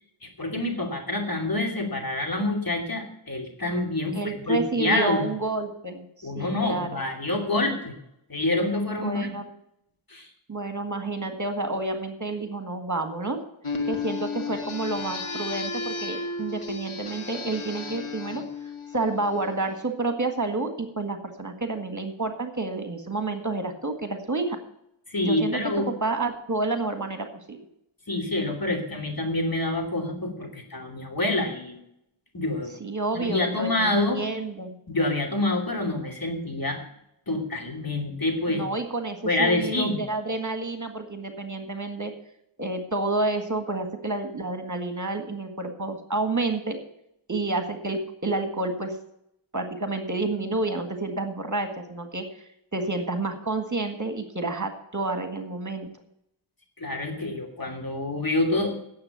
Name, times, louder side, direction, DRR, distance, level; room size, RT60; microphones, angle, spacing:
voice 1, 0.2-5.3 6.2-7.9 8.3-9.3 10.1-10.3 25.1-25.9 28.1-31.8 32.3-32.7 33.1-34.2 34.9-36.8 37.3-38.6 39.2-40.0 56.8-58.8, left 2 dB, 45° left, 2 dB, 2.8 m, -27 dB
voice 2, 4.1-7.0 9.0-9.5 10.5-13.4 13.9-18.4 18.9-24.6 25.2-25.6 25.9-27.6 32.8-34.8 38.5-42.1 42.6-46.8 47.3-49.0 49.5-52.3 52.7-55.9, right 2 dB, 35° right, 6 dB, 1.7 m, -29 dB
sound 1, 13.6-19.7, left 4 dB, 80° left, 1.8 m, -34 dB
9.5 x 7.6 x 9.3 m, 0.78 s
wide cardioid pair, 55°, 49 cm